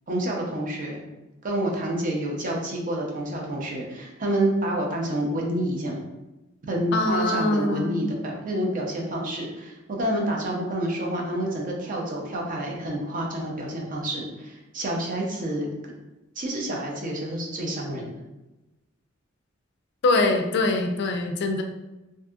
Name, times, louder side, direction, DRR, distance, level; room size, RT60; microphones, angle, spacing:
voice 1, 0.1-1.0 1.4-6.0 6.7-15.7 16.4-18.2, right 1 dB, 45° right, -1 dB, 0.5 m, -28 dB
voice 2, 6.9-8.1 20.0-21.6, left 2 dB, 60° left, 5 dB, 0.3 m, -23 dB
2.6 x 2.6 x 2.3 m, 1.0 s
head